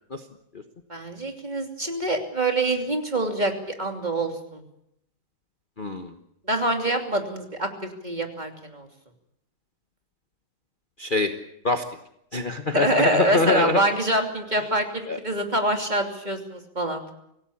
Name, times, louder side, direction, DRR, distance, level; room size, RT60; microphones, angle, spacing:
voice 1, 0.9-4.6 6.5-8.9 12.7-17.0, right 1 dB, 25° right, 4 dB, 3.0 m, -25 dB
voice 2, 5.8-6.1 11.0-11.3 11.6-11.8 12.3-13.8 15.1-15.2, left 2 dB, 30° left, 6 dB, 1.3 m, -24 dB
25.5 x 17.0 x 8.5 m, 0.79 s
omnidirectional pair, 1.9 m